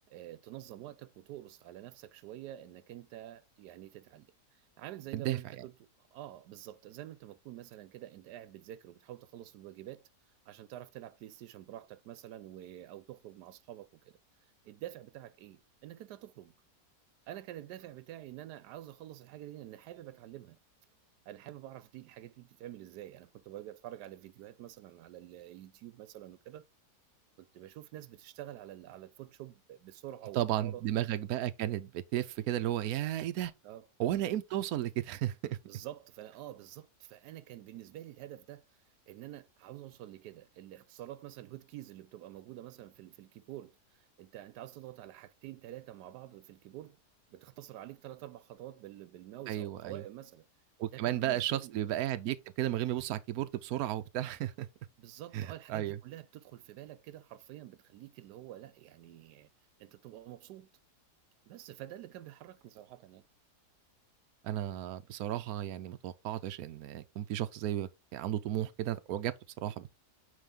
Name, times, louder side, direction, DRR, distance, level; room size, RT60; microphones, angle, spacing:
voice 1, 0.1-5.7 6.1-10.0 10.5-14.1 14.6-16.5 17.3-20.6 21.3-26.6 27.4-30.8 33.6-33.9 35.7-38.6 39.1-47.0 47.3-50.4 50.9-51.7 55.0-59.5 59.8-60.7 61.5-63.2, right 13 dB, 90° right, 1.2 m, -48 dB
voice 2, 30.3-33.5 34.0-35.6 49.5-50.0 50.8-54.7 55.3-56.0 64.4-69.9, right 12 dB, 70° right, 1.1 m, -34 dB
8.9 x 3.6 x 3.7 m
omnidirectional pair, 1.7 m